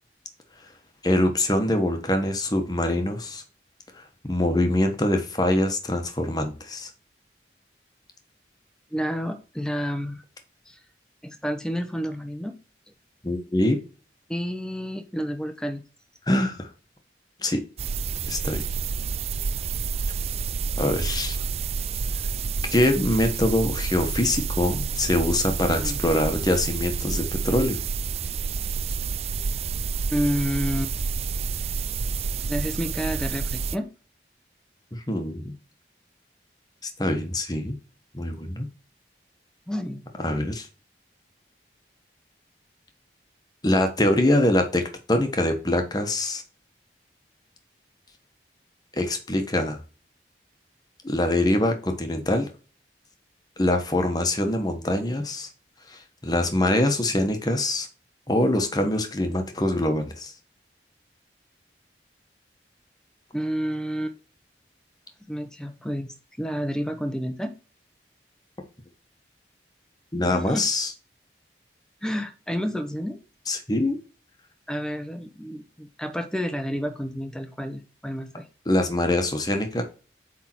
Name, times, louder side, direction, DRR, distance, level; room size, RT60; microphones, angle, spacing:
voice 1, 1.0-3.4 4.2-6.9 13.2-13.8 16.3-16.7 17.4-17.6 18.3-18.6 20.8-21.4 22.7-27.8 34.9-35.5 37.0-37.8 38.1-38.7 40.2-40.7 43.6-44.8 45.1-46.4 49.0-49.8 51.0-52.5 53.6-55.5 55.9-57.9 58.3-60.3 70.1-70.9 73.5-74.0 78.7-79.8, left 1 dB, 20° left, 1.2 m, -24 dB
voice 2, 8.9-10.2 10.7-10.8 11.2-12.6 14.3-15.8 25.7-26.0 30.1-30.9 32.5-33.9 39.7-40.0 63.3-64.2 65.3-67.5 70.2-70.6 72.0-73.2 74.7-78.5, equal, 5° left, 0.8 m, -30 dB
sound 1, 17.8-33.8, right 5 dB, 35° right, 0.3 m, -29 dB
8.1 x 3.6 x 4.5 m
head